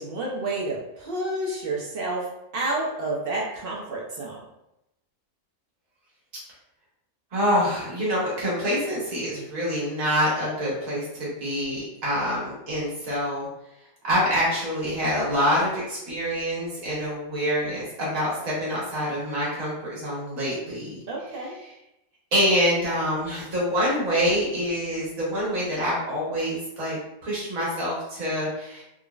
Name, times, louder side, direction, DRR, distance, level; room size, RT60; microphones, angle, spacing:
voice 1, 0.0-4.5 21.1-21.6, right 2 dB, 55° right, -3 dB, 0.6 m, -30 dB
voice 2, 7.3-13.5 14.0-21.0 22.3-28.8, equal, 90° right, -7 dB, 1.7 m, -26 dB
3.7 x 2.0 x 2.3 m, 0.86 s
omnidirectional pair, 1.4 m